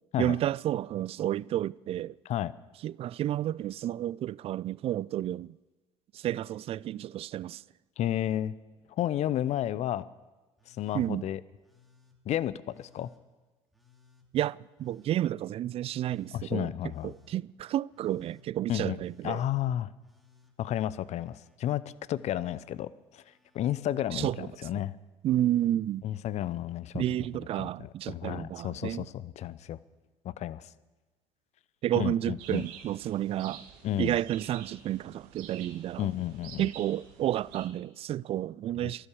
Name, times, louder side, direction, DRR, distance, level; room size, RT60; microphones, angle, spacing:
voice 1, 0.2-2.2 2.8-5.6 6.1-7.6 10.9-11.2 14.3-16.7 17.0-19.4 24.1-24.5 25.2-26.0 26.9-29.1 31.8-33.6 34.0-36.1 36.6-39.1, right 12 dB, 45° right, 0.4 m, -31 dB
voice 2, 8.0-8.5 9.0-10.0 10.7-11.4 12.3-13.1 16.3-17.1 18.7-19.9 20.6-21.8 22.1-23.2 23.5-25.0 26.0-27.0 27.6-29.8 30.2-30.7 32.0-32.6 33.8-34.2 36.0-36.7 38.8-38.9, left 12 dB, 50° left, 0.7 m, -32 dB
Telephone, 10.6-11.1 11.6-12.2 12.7-13.2 13.7-14.3 14.8-15.3 15.8-16.4 16.9-17.4 17.9-18.5 18.9-19.5 20.0-21.6 21.8-22.6 23.2-23.7 24.2-24.7 25.3-25.8 27.0-27.1, left 6 dB, ahead, 2.8 m, -63 dB
sound 1, 32.4-37.7, right 8 dB, 70° right, 1.7 m, -49 dB
12.5 x 11.5 x 8.3 m
hypercardioid pair, 70°, 14 cm